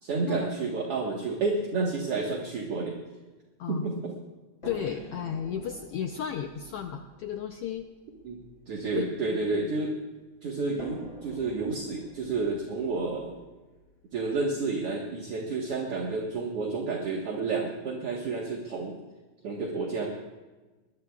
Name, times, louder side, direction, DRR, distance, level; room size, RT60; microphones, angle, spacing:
voice 1, 0.0-3.0 3.7-4.1 8.2-8.4 8.7-10.0 10.4-13.3 14.1-19.0 19.4-20.1, right 3 dB, 55° right, -1 dB, 2.3 m, -30 dB
voice 2, 4.6-7.9 9.0-9.1 9.5-9.7, left 9 dB, 75° left, 5 dB, 1.4 m, -34 dB
sound 1, 4.6-9.8 10.8-14.7 15.7-15.8 16.2-16.3, equal, 25° left, 4.5 m, -48 dB
22.0 x 20.0 x 2.4 m, 1.2 s
omnidirectional pair, 3.4 m